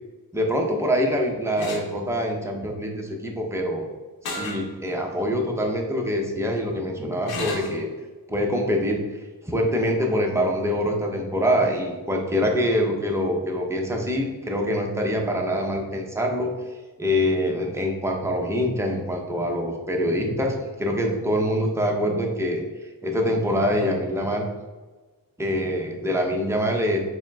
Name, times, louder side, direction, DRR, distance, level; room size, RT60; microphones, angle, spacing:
voice 1, 0.3-3.9 4.3-7.9 8.3-9.0 9.4-16.5 17.0-24.5 25.4-27.0, equal, 10° right, 1 dB, 0.6 m, -25 dB
sound 1, 1.6-1.9 4.3-4.6 5.2-5.3 7.3-7.8, left 2 dB, 80° left, 0.8 m, -31 dB
4.9 x 2.0 x 3.4 m, 1.3 s
wide cardioid pair, 100°, 36 cm